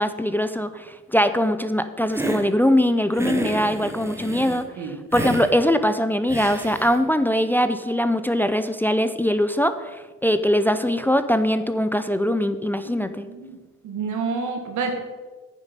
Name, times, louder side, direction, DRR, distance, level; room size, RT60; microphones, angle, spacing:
voice 1, 0.0-13.3, equal, 5° left, 10 dB, 0.5 m, -22 dB
Hiss, 2.1-2.5 3.1-4.6 5.1-5.5 6.3-7.0, right 1 dB, 10° right, 1.2 m, -30 dB
voice 2, 12.8-13.6 13.8-15.0, right 4 dB, 75° right, 4 dB, 1.7 m, -29 dB
9.1 x 7.3 x 5.3 m, 1.3 s
cardioid pair, 90°, 30 cm